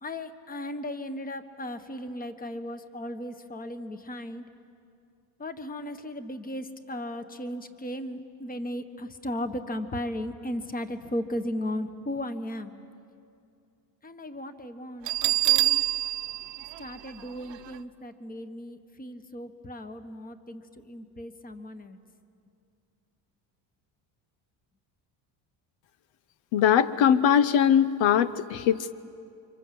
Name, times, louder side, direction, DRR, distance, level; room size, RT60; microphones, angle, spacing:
voice 1, 0.0-4.5 5.4-12.7 14.0-15.8 16.8-22.0, left 1 dB, 20° left, 9 dB, 1.4 m, -36 dB
Bell, 15.1-17.8, right 16 dB, 70° right, 1.0 m, -26 dB
voice 2, 26.5-28.9, left 9 dB, 80° left, 14 dB, 0.9 m, -21 dB
29.5 x 25.5 x 7.8 m, 2.5 s
cardioid pair, 120°, 45 cm